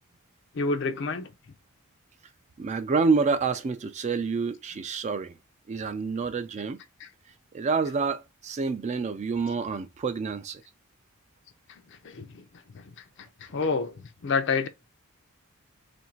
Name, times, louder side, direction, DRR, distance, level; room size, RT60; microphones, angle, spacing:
voice 1, 0.5-1.3 7.0-7.1 12.0-12.4 12.7-12.8 13.4-14.7, left 4 dB, 55° left, 0.5 m, -28 dB
voice 2, 2.6-5.4 5.7-6.8 7.5-10.6, right 4 dB, 30° right, 0.3 m, -28 dB
3.1 x 2.5 x 4.4 m
head